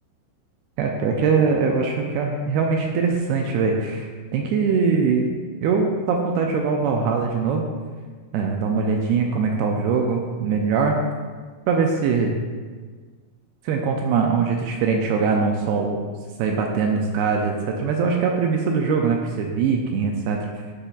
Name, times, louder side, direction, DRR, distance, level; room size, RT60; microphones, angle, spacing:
voice 1, 0.8-5.3 5.6-7.7 8.3-11.0 11.7-12.4 13.7-16.0 16.4-20.5, right 5 dB, 80° right, 1 dB, 2.3 m, -22 dB
12.0 x 4.4 x 2.4 m, 1.5 s
omnidirectional pair, 4.7 m